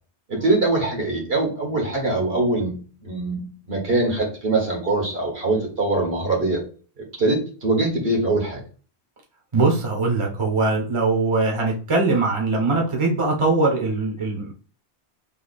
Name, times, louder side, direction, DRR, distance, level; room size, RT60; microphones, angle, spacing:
voice 1, 0.3-6.6 7.0-8.6, right 2 dB, 65° right, 0 dB, 1.8 m, -23 dB
voice 2, 9.5-14.5, right 3 dB, 30° right, 0 dB, 1.0 m, -21 dB
3.5 x 2.8 x 4.1 m, 0.39 s
omnidirectional pair, 1.1 m